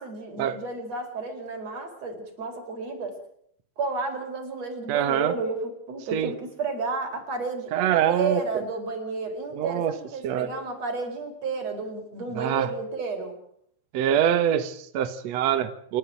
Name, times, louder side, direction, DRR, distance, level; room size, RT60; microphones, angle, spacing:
voice 1, 0.0-3.1 3.8-13.4, right 3 dB, 35° right, 4 dB, 5.5 m, -32 dB
voice 2, 4.9-5.3 6.1-6.3 7.7-8.4 9.5-9.9 10.2-10.5 12.4-12.7 13.9-16.0, right 10 dB, 90° right, 10 dB, 1.4 m, -24 dB
28.5 x 13.0 x 9.2 m, 0.68 s
omnidirectional pair, 5.2 m